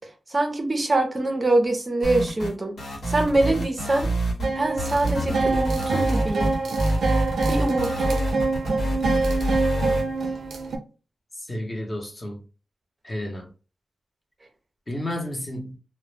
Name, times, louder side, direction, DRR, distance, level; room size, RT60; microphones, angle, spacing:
voice 1, 0.3-2.8 3.1-4.1 4.6-6.5 7.5-8.2, right 2 dB, 30° right, 0.5 m, -24 dB
sound 1, 2.0-2.5 2.8-4.5 4.8-10.0, right 1 dB, 90° left, 1.0 m, -26 dB
sound 2, 4.4-10.8, right 3 dB, 85° right, 0.4 m, -25 dB
voice 2, 11.3-12.4 13.0-13.5 14.9-15.8, left 1 dB, 30° left, 0.7 m, -31 dB
2.1 x 2.0 x 3.1 m
wide cardioid pair, 105°, 0 cm